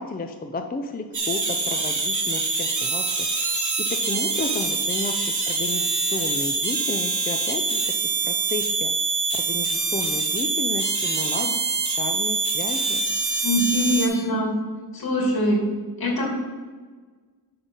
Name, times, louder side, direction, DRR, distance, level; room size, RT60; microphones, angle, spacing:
voice 1, 0.0-3.1 3.4-3.6 4.0-8.9 9.3-13.1, left 3 dB, 25° left, 5 dB, 0.4 m, -32 dB
sound 1, 1.1-14.1, right 3 dB, 45° right, 1.4 m, -25 dB
voice 2, 13.4-14.5 14.9-15.6 16.0-16.3, equal, 60° left, -1 dB, 2.4 m, -23 dB
9.8 x 3.8 x 5.4 m, 1.4 s
wide cardioid pair, 110°, 40 cm